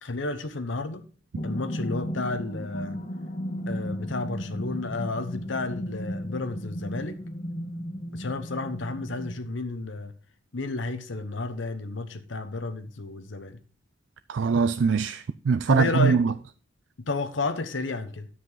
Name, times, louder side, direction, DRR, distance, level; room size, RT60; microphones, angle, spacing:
voice 1, 0.0-1.0 1.4-3.0 3.7-7.2 8.1-10.1 10.5-13.6 15.7-16.4 17.0-18.3, left 3 dB, 75° left, 1.0 m, -32 dB
sound 1, 1.4-9.3, equal, 40° left, 1.5 m, -35 dB
voice 2, 14.3-16.3, right 5 dB, 70° right, 0.4 m, -22 dB
9.7 x 7.6 x 3.9 m
head